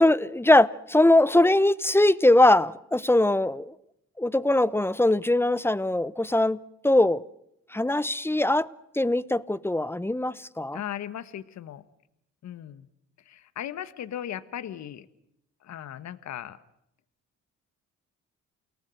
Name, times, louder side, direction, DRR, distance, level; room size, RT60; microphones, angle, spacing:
voice 1, 0.0-3.7 4.2-6.6 6.8-7.2 7.7-8.7 8.9-10.8, left 1 dB, 10° left, 0.9 m, -21 dB
voice 2, 10.7-11.8 12.4-12.9 13.2-15.1 15.6-16.6, left 10 dB, 65° left, 1.3 m, -37 dB
29.0 x 18.5 x 7.7 m
cardioid pair, 90°, 30 cm